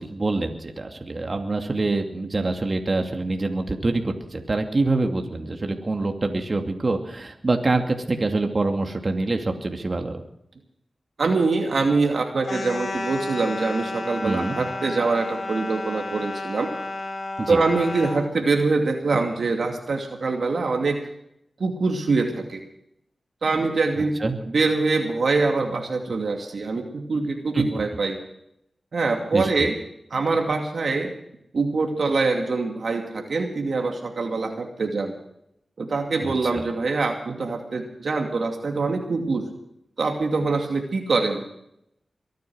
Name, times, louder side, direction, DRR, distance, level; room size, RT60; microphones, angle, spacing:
voice 1, 0.0-10.2 14.2-14.6 17.4-17.6 24.0-24.4 27.5-27.6 29.3-29.7 36.2-36.6, right 2 dB, 50° right, 4 dB, 2.6 m, -25 dB
voice 2, 11.2-16.7 17.5-21.0 21.6-22.6 23.4-24.1 24.4-28.2 28.9-29.7 30.1-31.1 31.5-35.1 35.8-39.5 40.0-41.4, right 3 dB, 75° right, 3 dB, 2.5 m, -24 dB
sound 1, 12.4-18.2, left 2 dB, 70° left, 5.0 m, -32 dB
23.5 x 9.4 x 6.3 m, 0.74 s
cardioid pair, 40°, 0 cm